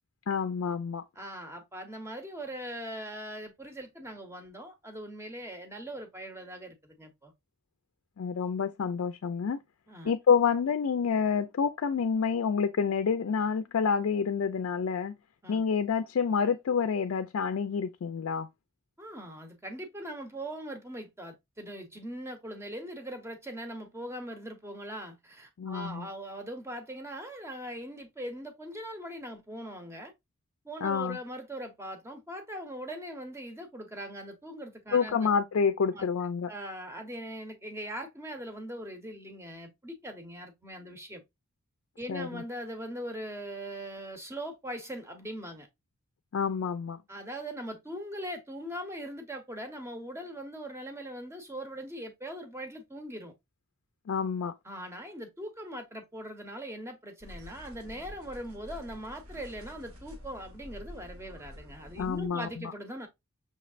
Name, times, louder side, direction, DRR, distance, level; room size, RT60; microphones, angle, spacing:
voice 1, 0.3-1.0 8.2-9.6 10.0-15.1 15.5-18.5 25.6-26.1 30.8-31.2 34.9-36.5 42.1-42.4 46.3-47.0 54.1-54.5 62.0-62.7, left 6 dB, 65° left, 0.4 m, -28 dB
voice 2, 1.2-7.3 9.9-10.1 15.4-15.6 19.0-30.1 30.6-35.3 35.9-36.0 36.5-41.2 42.0-45.7 47.1-53.3 54.6-63.1, equal, 10° right, 0.9 m, -41 dB
sound 1, 57.2-62.3, left 1 dB, 75° right, 1.6 m, -48 dB
6.3 x 3.1 x 2.4 m
head